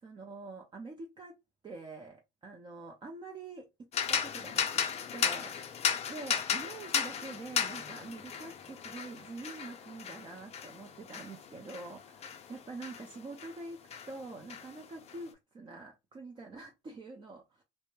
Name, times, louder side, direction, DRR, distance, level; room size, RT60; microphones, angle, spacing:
voice 1, 0.0-1.3 1.6-4.9 5.1-5.5 6.1-13.8 14.0-17.6, right 3 dB, 30° right, 0.5 m, -46 dB
sound 1, 3.9-13.6 13.9-15.2, left 7 dB, 40° left, 0.5 m, -35 dB
2.1 x 2.1 x 3.1 m
supercardioid pair, 70°, 16 cm